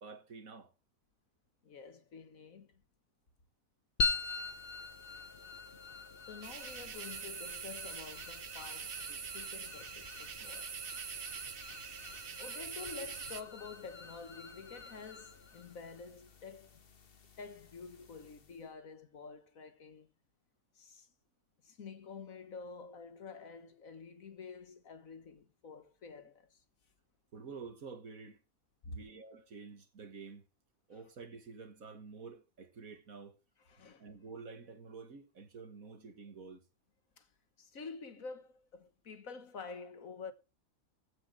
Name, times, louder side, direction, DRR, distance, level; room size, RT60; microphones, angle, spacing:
voice 1, 0.0-0.7 27.3-28.4 28.9-30.5 30.9-33.4 34.0-36.6, right 4 dB, 65° right, 2.1 m, -49 dB
voice 2, 1.6-2.8 6.2-10.8 12.1-16.8 17.4-20.1 20.8-21.1 21.6-26.6 28.8-29.0 33.7-34.1 37.2-37.3 37.6-40.3, left 5 dB, 60° left, 1.7 m, -49 dB
sound 1, 4.0-18.7, left 4 dB, 40° left, 1.4 m, -43 dB
sound 2, 6.4-13.4, right 7 dB, 45° right, 0.9 m, -44 dB
16.0 x 5.3 x 6.3 m
omnidirectional pair, 1.6 m